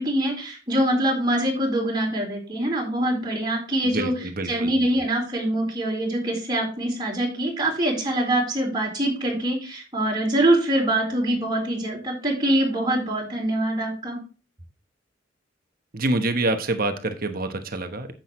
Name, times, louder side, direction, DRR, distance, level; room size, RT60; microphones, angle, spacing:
voice 1, 0.0-14.2, right 1 dB, 25° right, -2 dB, 4.0 m, -24 dB
voice 2, 3.8-4.7 15.9-18.1, right 2 dB, 50° right, 7 dB, 1.1 m, -26 dB
10.0 x 7.7 x 3.1 m, 0.35 s
head